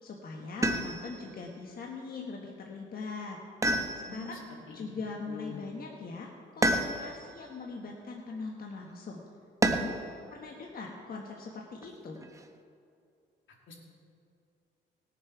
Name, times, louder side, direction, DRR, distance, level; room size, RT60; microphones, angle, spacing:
voice 1, 0.0-3.4 3.9-4.4 4.7-9.2 9.7-12.2, left 4 dB, 50° left, 0 dB, 1.4 m, -41 dB
sound 1, 0.6-1.3 3.6-4.4 6.6-7.3 9.6-10.1 11.8-12.5, right 1 dB, 15° right, 0.9 m, -29 dB
voice 2, 4.1-5.0 5.3-5.6 13.7-13.8, left 4 dB, 75° left, -1 dB, 2.6 m, -45 dB
19.0 x 7.4 x 4.7 m, 2.5 s
cardioid pair, 90°, 20 cm